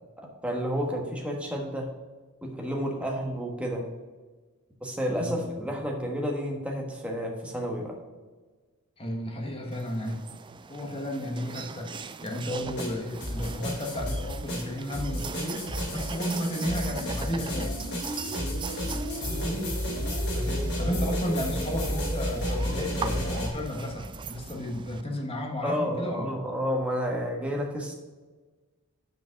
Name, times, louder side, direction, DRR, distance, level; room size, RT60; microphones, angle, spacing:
voice 1, 0.2-1.9 2.4-3.9 4.8-8.0 19.3-19.5 25.6-27.9, equal, 5° right, -1 dB, 1.4 m, -31 dB
voice 2, 5.0-5.7 9.0-10.2 10.7-17.8 19.2-19.7 20.3-26.2, equal, 25° left, 1 dB, 1.3 m, -33 dB
sound 1, 9.7-25.0, right 5 dB, 20° right, 0.3 m, -41 dB
sound 2, 12.6-23.5, equal, 50° left, 2.3 m, -31 dB
6.2 x 5.2 x 5.8 m, 1.3 s
head